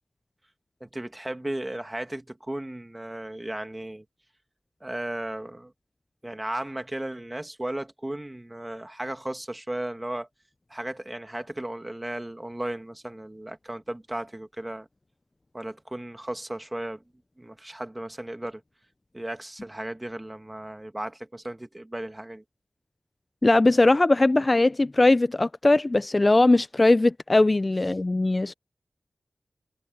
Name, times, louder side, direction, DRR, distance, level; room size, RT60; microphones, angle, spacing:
voice 1, 0.8-4.1 4.8-5.7 6.2-10.3 10.7-14.9 15.5-17.0 17.4-18.6 19.1-22.4, right 1 dB, 20° right, 1.9 m, -35 dB
voice 2, 23.4-28.5, left 2 dB, 30° left, 0.4 m, -20 dB
wide cardioid pair, 95°, 0 cm